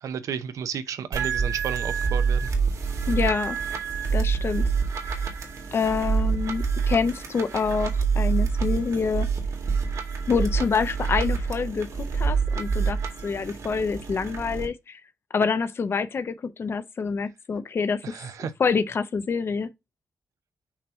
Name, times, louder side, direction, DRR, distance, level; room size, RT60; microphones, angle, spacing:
voice 1, 0.0-2.5 18.0-18.5, right 7 dB, 85° right, 0.7 m, -32 dB
sound 1, 1.1-14.7, right 5 dB, 70° right, 1.9 m, -27 dB
voice 2, 3.1-3.6 4.1-4.7 5.0-5.3 5.7-9.3 10.3-13.0 13.2-15.0 15.3-18.1 18.6-19.7, left 5 dB, 50° left, 0.8 m, -26 dB
5.8 x 3.0 x 5.5 m
cardioid pair, 100°, 5 cm